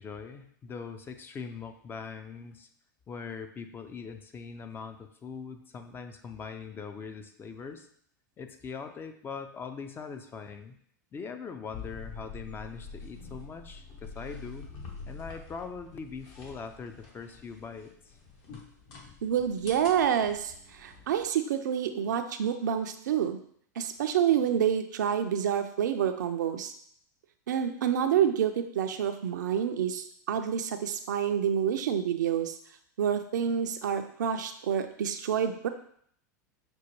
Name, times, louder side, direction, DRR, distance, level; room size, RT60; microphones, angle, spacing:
voice 1, 0.0-2.7 3.1-7.9 8.4-10.8 11.1-14.7 15.1-18.2, left 5 dB, 20° left, 7 dB, 0.4 m, -41 dB
sound 1, 11.7-21.3, left 4 dB, 50° left, 1.0 m, -46 dB
voice 2, 19.2-23.4 23.8-26.7 27.5-32.6 33.0-35.7, right 8 dB, 75° right, 7 dB, 0.4 m, -28 dB
6.0 x 2.2 x 3.0 m, 0.64 s
hypercardioid pair, 95°, 10 cm